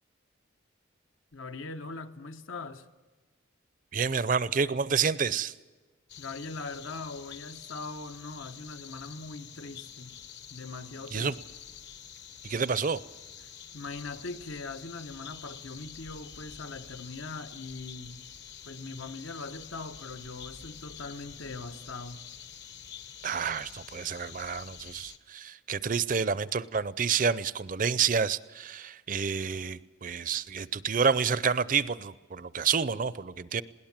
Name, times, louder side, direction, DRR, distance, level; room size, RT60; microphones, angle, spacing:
voice 1, 1.3-2.9 6.2-10.1 10.5-11.3 13.4-18.2 18.7-22.2, left 3 dB, 80° left, 1.2 m, -41 dB
voice 2, 3.9-5.5 11.1-11.3 12.4-13.0 23.2-33.6, right 6 dB, 40° right, 0.5 m, -29 dB
sound 1, 6.1-25.2, left 8 dB, 55° left, 1.1 m, -47 dB
21.0 x 18.0 x 7.4 m
head